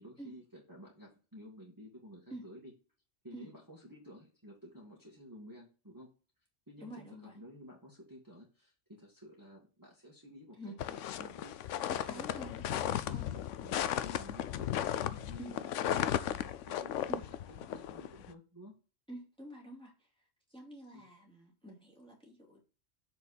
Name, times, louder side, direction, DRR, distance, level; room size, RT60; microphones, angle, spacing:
voice 1, 0.0-2.7 3.2-6.1 6.7-12.3 13.1-18.7 20.9-21.0, equal, 15° right, -4 dB, 1.9 m, -53 dB
voice 2, 6.8-7.4 10.6-10.8 11.9-13.3 15.4-15.5 17.1-17.2 19.1-20.1 20.5-22.6, right 1 dB, 5° left, -3 dB, 2.4 m, -48 dB
sound 1, 10.8-18.3, left 11 dB, 90° left, 0.9 m, -35 dB
6.9 x 5.2 x 4.1 m, 0.36 s
omnidirectional pair, 1.2 m